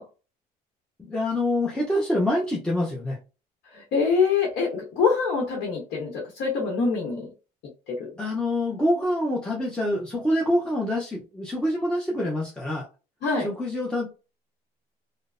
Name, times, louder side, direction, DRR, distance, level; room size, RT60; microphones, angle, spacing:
voice 1, 1.0-3.2 8.2-12.9 13.4-14.1, left 1 dB, 5° left, -4 dB, 0.6 m, -26 dB
voice 2, 3.7-7.3 7.9-8.1 13.2-13.5, left 5 dB, 80° left, -1 dB, 0.9 m, -25 dB
3.0 x 2.0 x 2.4 m, 0.32 s
cardioid pair, 110°, 17 cm